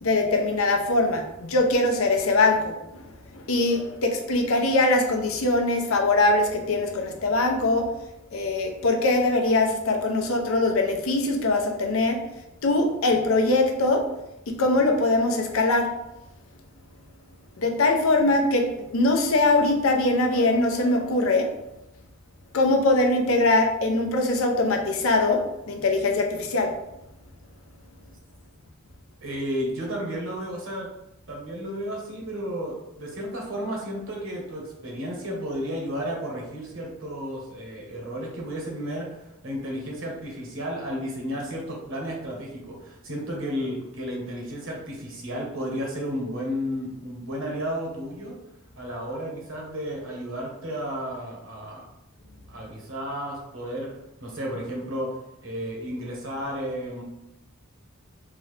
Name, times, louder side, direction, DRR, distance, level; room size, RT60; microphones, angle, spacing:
voice 1, 0.0-3.0 3.3-7.9 8.3-12.2 12.6-14.0 14.6-15.9 17.6-18.6 18.9-21.5 22.5-26.7, left 2 dB, 80° left, 3 dB, 0.6 m, -22 dB
voice 2, 29.2-30.9 31.3-48.4 48.8-51.9 52.5-53.9 54.2-55.2 55.4-57.0, equal, 65° right, -1 dB, 1.1 m, -33 dB
3.7 x 2.8 x 3.2 m, 0.89 s
head